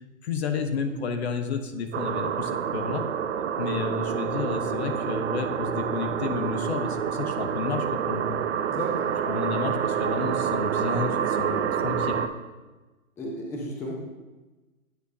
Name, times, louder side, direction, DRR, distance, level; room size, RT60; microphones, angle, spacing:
voice 1, 0.2-3.1 3.6-8.4 9.3-12.2, left 5 dB, 55° left, 7 dB, 0.8 m, -31 dB
sound 1, 1.9-12.3, right 8 dB, 55° right, 0.6 m, -28 dB
voice 2, 8.7-9.1 13.2-13.9, equal, 5° left, -2 dB, 0.5 m, -33 dB
9.0 x 6.3 x 2.7 m, 1.2 s
hypercardioid pair, 125°, 40 cm